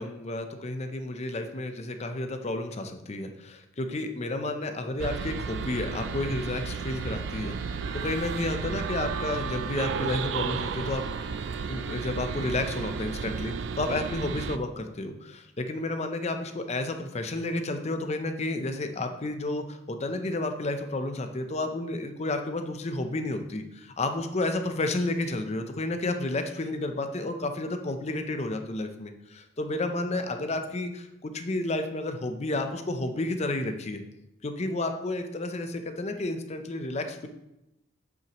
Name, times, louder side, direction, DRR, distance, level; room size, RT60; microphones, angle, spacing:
voice 1, 0.0-11.0 11.7-34.0 34.4-37.3, left 2 dB, 35° left, 7 dB, 0.6 m, -31 dB
sound 1, 5.0-14.6, right 6 dB, 65° right, 0.3 m, -33 dB
7.8 x 5.9 x 3.0 m, 0.89 s
head